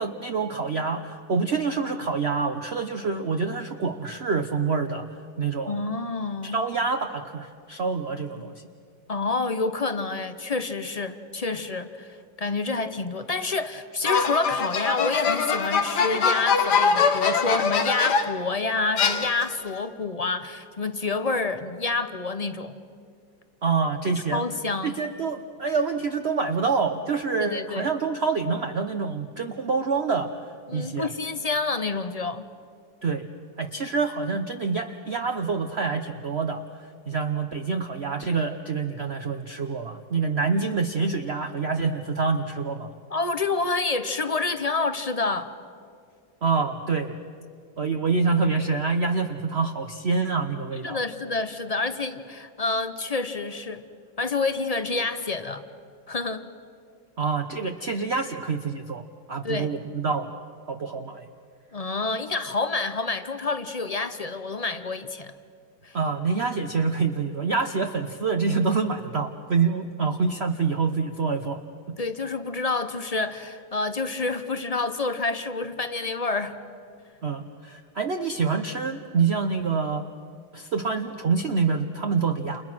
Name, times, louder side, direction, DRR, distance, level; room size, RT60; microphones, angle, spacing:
voice 1, 0.0-5.1 5.4-5.9 6.4-8.5 23.6-24.4 24.8-30.3 30.7-31.1 33.0-33.3 33.6-42.9 46.4-47.2 47.8-51.0 57.2-60.3 60.7-61.2 65.9-71.6 77.2-80.1 80.5-82.6, right 4 dB, 45° right, 5 dB, 1.0 m, -26 dB
voice 2, 5.7-6.6 9.1-22.8 24.3-25.0 27.4-27.9 30.7-32.5 43.1-45.5 50.8-53.8 54.2-55.6 56.1-56.5 59.4-59.7 61.7-65.3 65.8-66.0 72.0-76.6, left 3 dB, 30° left, 10 dB, 0.7 m, -28 dB
sound 1, 14.1-18.5 19.0-19.7, left 5 dB, 65° left, 1.9 m, -23 dB
29.5 x 29.5 x 6.1 m, 2.2 s
omnidirectional pair, 2.0 m